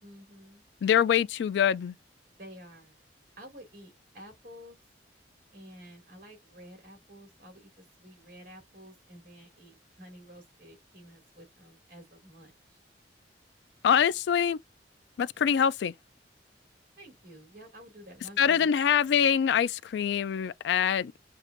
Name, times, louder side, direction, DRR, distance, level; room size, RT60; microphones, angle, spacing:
voice 1, 0.0-0.6 2.3-3.0 3.4-4.8 5.5-12.8 17.0-18.7, equal, 55° right, 2.5 m, -50 dB
voice 2, 0.8-1.9 13.8-14.6 15.2-15.9 18.4-21.1, left 8 dB, 70° left, 0.3 m, -24 dB
6.5 x 2.5 x 2.5 m
head